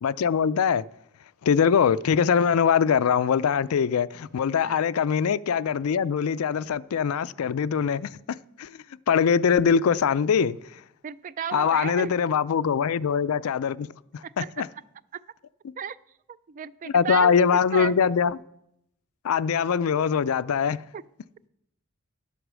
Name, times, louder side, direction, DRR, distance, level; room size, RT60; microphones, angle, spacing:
voice 1, 0.0-0.8 1.4-10.8 11.5-13.9 14.1-14.7 16.9-18.4 19.2-20.8, left 7 dB, 85° left, 0.4 m, -23 dB
voice 2, 11.0-12.1 14.2-14.5 15.1-15.2 15.8-16.0 16.5-17.9 20.9-21.0, right 7 dB, 35° right, 0.3 m, -33 dB
11.5 x 8.0 x 6.2 m
head